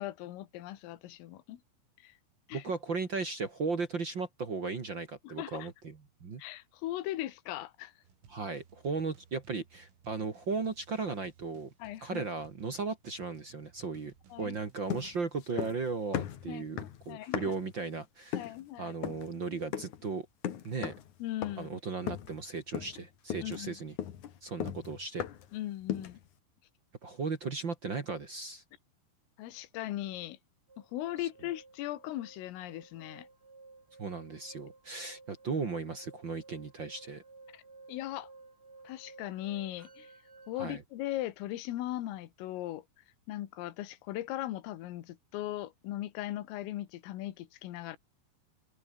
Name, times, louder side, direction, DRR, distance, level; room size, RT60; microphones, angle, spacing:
voice 1, 0.0-1.6 2.0-2.2 2.5-2.7 5.2-5.7 6.4-7.9 11.8-12.2 14.3-14.6 16.5-17.5 18.3-19.0 21.2-21.8 23.4-23.8 25.5-26.2 29.4-30.4 30.8-33.3 37.5-37.6 37.9-38.3 38.9-40.1 40.5-42.8 43.3-48.0, left 14 dB, 80° left, 4.3 m, -39 dB
voice 2, 2.5-6.4 8.3-11.7 12.0-20.2 20.6-20.9 21.6-23.9 24.4-25.2 27.0-28.6 34.0-37.2 40.6-40.8, right 4 dB, 55° right, 1.3 m, -36 dB
sound 1, 8.0-15.3, right 7 dB, 75° right, 7.5 m, -61 dB
sound 2, 14.9-15.9 16.1-17.7 18.3-18.6 19.0-19.3 19.7-20.0 20.4-21.1 21.4-21.7 22.1-22.4 22.7-23.0 23.3-25.5 25.9-26.2, left 10 dB, 60° left, 2.1 m, -37 dB
sound 3, 30.7-40.5, right 3 dB, 20° right, 3.7 m, -55 dB
open air
omnidirectional pair, 5.9 m